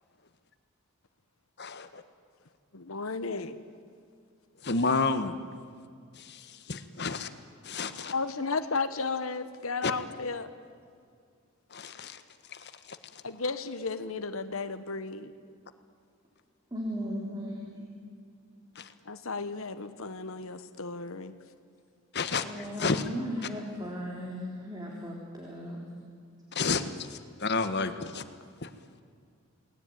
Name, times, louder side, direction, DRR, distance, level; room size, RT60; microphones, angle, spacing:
voice 1, 1.6-2.0 4.6-5.3 6.1-7.3 7.6-8.1 9.8-9.9 11.7-12.2 12.5-13.0 18.7-18.9 22.1-22.4 22.8-23.0 26.5-28.2 28.6-28.7, left 4 dB, 50° left, 10 dB, 1.5 m, -31 dB
voice 2, 2.7-3.6 8.1-10.5 13.2-15.3 19.0-21.4, left 4 dB, 70° left, 10 dB, 1.3 m, -34 dB
voice 3, 16.7-17.9 22.4-25.8, equal, 20° right, -1 dB, 3.4 m, -37 dB
28.5 x 20.0 x 9.4 m, 2.2 s
head